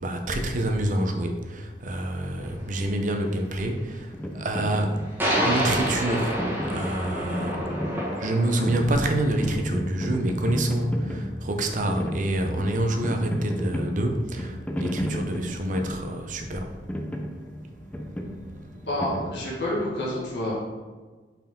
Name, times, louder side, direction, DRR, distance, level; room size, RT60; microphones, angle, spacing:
voice 1, 0.0-5.0 5.4-7.6 8.2-16.8 18.2-18.4 18.6-18.9, right 1 dB, 45° right, 4 dB, 0.7 m, -27 dB
sound 1, 2.5-2.6 5.2-9.5, equal, 10° right, 1.7 m, -28 dB
sound 2, 4.1-19.9, equal, 10° left, 0.5 m, -33 dB
sound 3, 8.4-14.6, equal, 75° right, 1.3 m, -42 dB
voice 2, 18.9-20.5, left 1 dB, 75° left, -6 dB, 1.9 m, -28 dB
5.3 x 4.7 x 3.8 m, 1.4 s
head